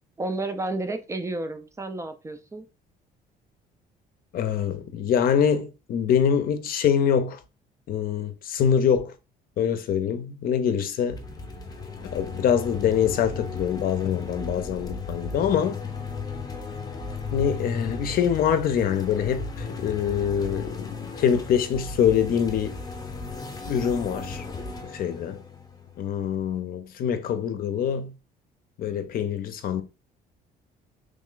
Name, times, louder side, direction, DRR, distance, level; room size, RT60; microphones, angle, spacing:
voice 1, 0.2-2.7, right 2 dB, 15° right, 0.4 m, -31 dB
voice 2, 4.3-7.4 7.9-9.2 9.6-11.2 12.0-15.9 17.3-22.8 23.7-24.5 24.8-25.4 26.0-28.1 28.8-29.8, left 8 dB, 60° left, 0.6 m, -24 dB
sound 1, 11.1-26.5, left 4 dB, 20° left, 0.7 m, -36 dB
3.1 x 2.4 x 3.7 m
cardioid pair, 110°, 17 cm